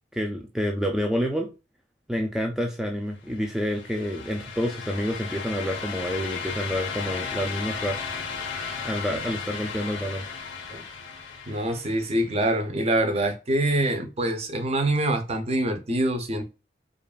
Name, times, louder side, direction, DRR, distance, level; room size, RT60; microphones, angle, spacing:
voice 1, 0.1-1.5 2.1-8.0 8.8-10.3, equal, 5° right, 0.4 m, -28 dB
sound 1, 3.3-12.2, left 5 dB, 90° left, 0.8 m, -35 dB
voice 2, 11.5-16.4, right 1 dB, 35° right, 0.7 m, -25 dB
5.1 x 2.4 x 2.4 m
head